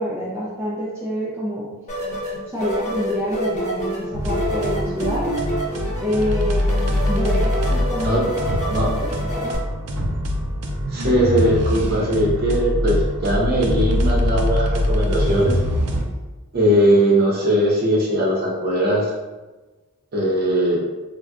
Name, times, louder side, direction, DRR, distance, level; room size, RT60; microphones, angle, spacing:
voice 1, 0.0-1.7 2.5-5.3 6.0-8.6 9.0-9.6, equal, 10° right, -6 dB, 0.4 m, -27 dB
sound 1, 1.9-9.6, equal, 30° left, 0.9 m, -28 dB
sound 2, 4.1-16.0, left 1 dB, 75° right, 0.4 m, -23 dB
voice 2, 10.9-15.6 16.5-19.1 20.1-20.8, equal, 45° right, -4 dB, 0.8 m, -19 dB
3.8 x 2.2 x 2.4 m, 1.2 s
head